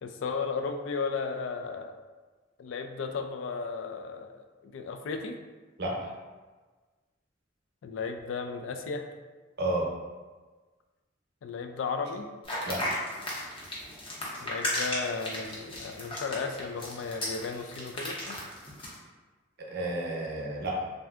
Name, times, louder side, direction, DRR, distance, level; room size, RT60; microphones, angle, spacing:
voice 1, 0.0-1.9 2.6-5.4 7.8-9.1 11.4-12.3 14.4-18.4, left 4 dB, 80° left, 6 dB, 0.3 m, -35 dB
voice 2, 5.8-6.1 9.6-9.9 12.6-13.0 19.6-20.8, right 1 dB, 60° right, -2 dB, 0.7 m, -31 dB
sound 1, 12.4-18.9, left 1 dB, 30° left, 0.7 m, -35 dB
3.2 x 2.6 x 2.3 m, 1.3 s
head